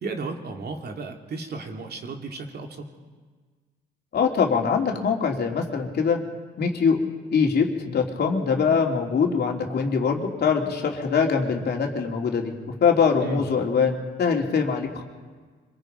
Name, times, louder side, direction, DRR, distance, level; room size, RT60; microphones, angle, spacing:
voice 1, 0.0-2.9 13.2-13.5, right 3 dB, 55° right, 2 dB, 2.8 m, -34 dB
voice 2, 4.1-6.2 6.6-7.0 7.3-12.5 12.8-15.0, left 6 dB, 55° left, 1 dB, 3.2 m, -23 dB
25.5 x 23.5 x 5.4 m, 1.5 s
cardioid pair, 90°, 20 cm